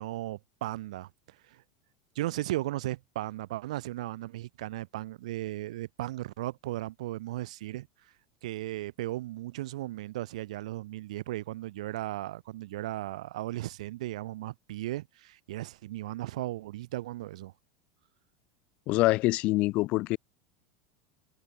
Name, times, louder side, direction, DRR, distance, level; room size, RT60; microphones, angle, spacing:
voice 1, 0.0-1.6 2.1-7.9 8.4-17.5, right 16 dB, 80° right, 5.1 m, -36 dB
voice 2, 18.9-20.2, left 20 dB, 35° left, 0.8 m, -25 dB
supercardioid pair, 170°, 4 cm